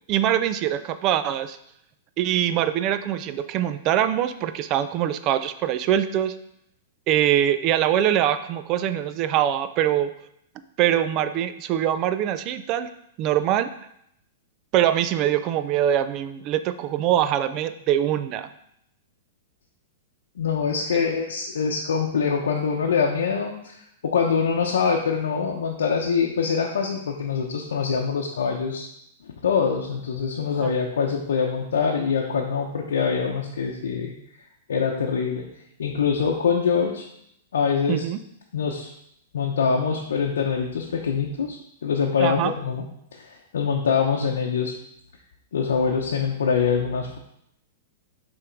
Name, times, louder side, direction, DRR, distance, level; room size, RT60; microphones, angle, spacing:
voice 1, 0.1-1.6 2.2-6.4 7.1-10.1 10.8-12.9 13.2-13.7 14.7-18.5 20.9-21.1 30.6-30.7 37.9-38.2 42.2-42.5, right 11 dB, 35° right, 12 dB, 0.4 m, -23 dB
voice 2, 20.4-23.8 24.0-28.9 29.4-34.1 34.7-35.5 35.8-37.1 37.5-38.0 38.5-38.9 39.3-42.8 43.1-43.3 43.5-44.7 45.5-47.2, left 6 dB, 90° left, -1 dB, 0.8 m, -24 dB
6.6 x 3.6 x 4.5 m, 0.76 s
hypercardioid pair, 140°, 0 cm